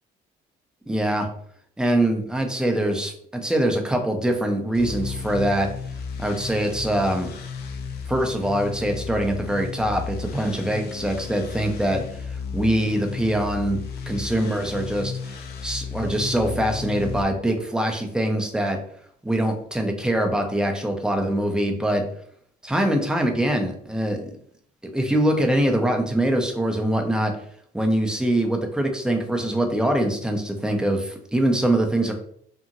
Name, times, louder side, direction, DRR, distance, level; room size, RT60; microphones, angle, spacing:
voice 1, 0.9-1.3 1.8-5.7 6.2-7.4 8.1-13.8 14.1-15.4 15.6-18.8 19.2-22.0 22.6-24.3 24.9-27.3 27.7-32.1, right 1 dB, 5° right, 3 dB, 0.4 m, -23 dB
sound 1, 4.7-17.2, left 5 dB, 70° left, 0.5 m, -34 dB
2.8 x 2.6 x 2.5 m, 0.63 s
cardioid pair, 110°, 17 cm